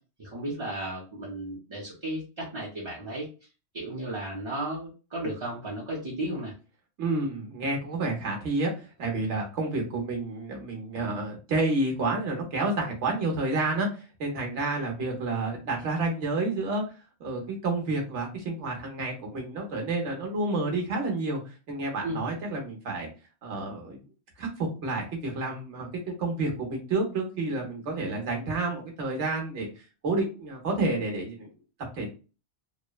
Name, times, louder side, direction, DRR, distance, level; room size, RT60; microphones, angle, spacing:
voice 1, 0.2-3.3 3.7-6.5 22.0-22.3, right 1 dB, 30° right, -6 dB, 0.6 m, -34 dB
voice 2, 7.0-8.7 9.0-16.8 17.2-23.1 23.4-24.0 24.4-29.7 30.0-31.5 32.0-32.1, right 2 dB, 85° right, 1 dB, 1.2 m, -30 dB
3.0 x 2.0 x 2.2 m, 0.33 s
omnidirectional pair, 1.2 m